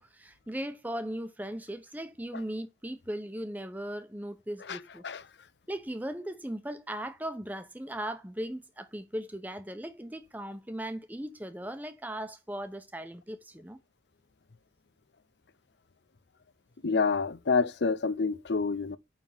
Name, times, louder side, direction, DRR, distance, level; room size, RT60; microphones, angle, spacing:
voice 1, 0.0-5.0 5.7-13.8, right 1 dB, 10° right, 0.9 m, -38 dB
voice 2, 16.8-19.0, left 4 dB, 85° left, 0.6 m, -27 dB
9.4 x 3.8 x 5.6 m
head